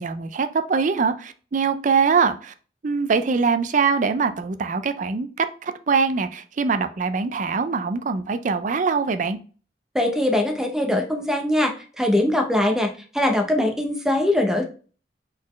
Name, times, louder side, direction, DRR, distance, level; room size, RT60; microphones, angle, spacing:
voice 1, 0.0-2.5 2.8-9.4, right 5 dB, 45° right, 10 dB, 0.4 m, -23 dB
voice 2, 9.9-14.6, left 1 dB, 5° right, 3 dB, 0.7 m, -22 dB
4.2 x 4.0 x 3.1 m, 0.38 s
head